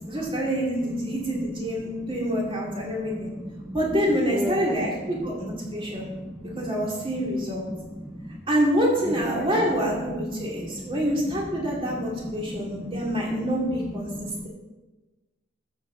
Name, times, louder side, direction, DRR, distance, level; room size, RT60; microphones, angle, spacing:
voice 1, 0.1-3.3 3.7-6.1 6.6-7.7 8.5-14.5, equal, 25° right, -3 dB, 2.5 m, -26 dB
voice 2, 3.4-3.8 4.3-4.7 5.7-6.1 6.4-6.9 7.7-8.1 9.1-9.5 10.5-11.0 14.1-14.5, equal, ahead, 1 dB, 0.5 m, -35 dB
12.5 x 7.5 x 3.9 m, 1.2 s
head